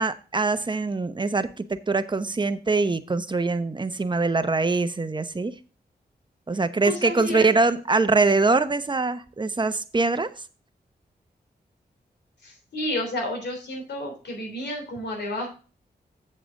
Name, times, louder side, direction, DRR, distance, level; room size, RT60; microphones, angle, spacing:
voice 1, 0.0-5.5 6.5-10.3, right 3 dB, 25° right, 11 dB, 0.8 m, -23 dB
voice 2, 6.8-7.5 12.4-15.5, left 1 dB, 85° left, 1 dB, 3.5 m, -31 dB
7.6 x 7.3 x 3.7 m, 0.37 s
cardioid pair, 55°, 17 cm